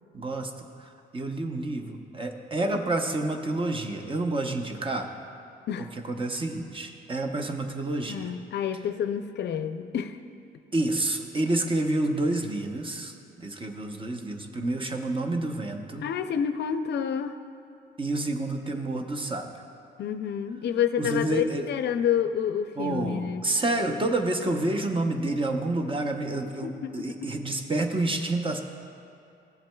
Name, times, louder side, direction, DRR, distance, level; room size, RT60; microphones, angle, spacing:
voice 1, 0.1-0.5 0.8-5.1 6.1-8.3 10.7-16.1 18.0-19.5 21.0-21.6 22.8-28.6, right 2 dB, 25° right, 4 dB, 0.7 m, -29 dB
voice 2, 8.1-10.2 16.0-17.4 20.0-23.4 26.6-27.2, left 8 dB, 60° left, 9 dB, 0.4 m, -29 dB
15.0 x 7.4 x 2.3 m, 2.5 s
cardioid pair, 90°, 20 cm